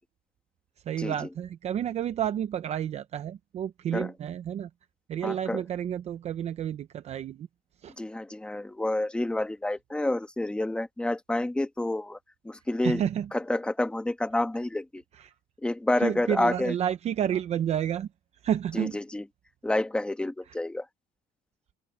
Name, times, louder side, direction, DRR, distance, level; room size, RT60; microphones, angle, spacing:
voice 1, 0.9-4.7 5.1-7.5 7.8-7.9 12.8-13.3 15.1-15.3 16.0-18.1 18.4-19.0, right 9 dB, 35° right, 0.7 m, -30 dB
voice 2, 5.2-5.6 8.0-12.2 12.4-13.0 13.3-15.0 15.6-16.7 18.7-19.2 19.6-20.8, left 1 dB, 5° left, 1.3 m, -29 dB
open air
cardioid pair, 170°, 18 cm